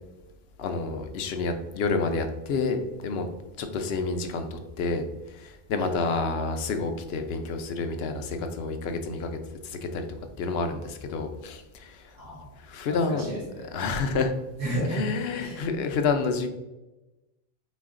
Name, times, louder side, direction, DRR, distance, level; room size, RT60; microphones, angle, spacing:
voice 1, 0.6-10.1 10.4-12.1 12.6-13.3 13.7-14.3 14.9-16.5, left 4 dB, 75° left, 6 dB, 0.8 m, -29 dB
voice 2, 12.1-12.5 12.9-13.7 14.6-15.1 15.4-15.7, equal, 55° right, -5 dB, 1.5 m, -32 dB
4.2 x 2.3 x 3.5 m, 1.0 s
omnidirectional pair, 1.1 m